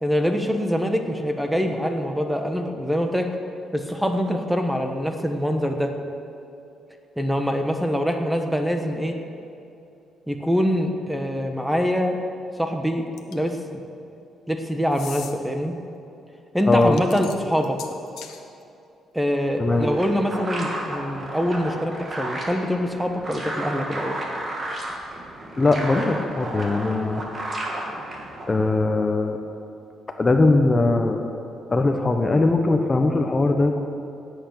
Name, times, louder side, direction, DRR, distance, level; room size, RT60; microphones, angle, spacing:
voice 1, 0.0-3.3 3.7-5.9 7.2-9.2 10.3-12.2 12.6-13.0 13.3-13.8 14.5-15.7 16.5-17.8 19.1-24.2, equal, 5° right, 4 dB, 1.3 m, -24 dB
sound 1, 13.2-13.6 14.9-15.3 16.8-18.4, left 9 dB, 80° left, 1.0 m, -39 dB
voice 2, 16.7-17.0 19.6-19.9 25.6-27.2 28.5-29.4 30.2-31.2 31.7-33.8, left 2 dB, 25° left, 5 dB, 1.1 m, -20 dB
sound 2, 19.4-28.7, right 1 dB, 35° right, 2.8 m, -33 dB
16.5 x 8.3 x 6.6 m, 2.7 s
cardioid pair, 90°, 0 cm